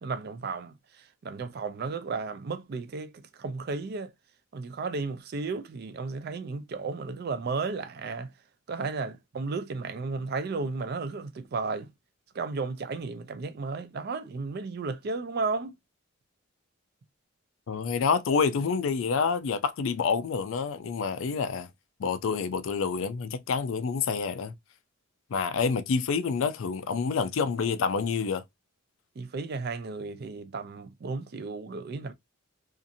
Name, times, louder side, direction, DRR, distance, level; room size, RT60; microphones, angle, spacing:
voice 1, 0.0-0.7 1.2-4.1 4.5-8.3 8.7-11.9 12.3-15.8 29.2-32.1, right 4 dB, 50° right, 0.4 m, -34 dB
voice 2, 17.7-21.7 22.0-24.5 25.3-28.4, left 5 dB, 65° left, 0.4 m, -28 dB
2.6 x 2.5 x 2.5 m
head